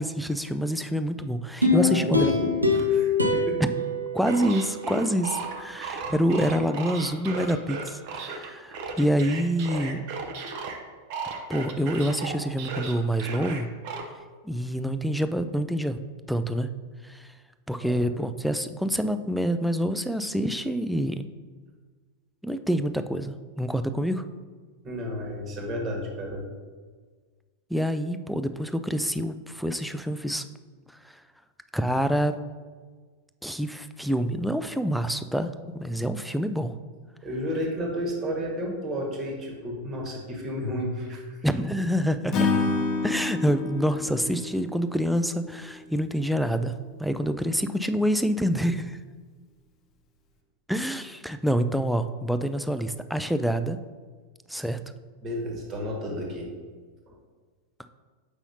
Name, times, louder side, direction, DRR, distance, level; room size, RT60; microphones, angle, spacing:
voice 1, 0.0-2.3 3.6-3.7 4.1-10.0 11.5-13.7 14.4-16.0 16.3-16.7 17.0-17.3 17.7-21.2 22.4-24.2 27.7-30.4 31.0-31.2 31.7-32.3 33.4-36.7 41.4-42.5 43.0-46.7 47.0-49.0 50.7-53.8 54.5-54.8, equal, ahead, 9 dB, 0.3 m, -27 dB
sound 1, 1.6-4.9 5.4-5.5, left 3 dB, 85° right, 0.7 m, -24 dB
voice 2, 1.7-3.6 17.8-18.0 24.8-26.4 37.2-41.4 55.2-56.5 57.1-57.2, equal, 30° right, 0 dB, 1.5 m, -32 dB
sound 2, 4.2-10.8 11.1-14.0, right 4 dB, 45° right, 0.7 m, -35 dB
Acoustic guitar / Strum, 42.3-45.6, left 4 dB, 30° left, 0.8 m, -28 dB
7.0 x 5.5 x 2.7 m, 1.5 s
figure-of-eight pair, 90°, 0 cm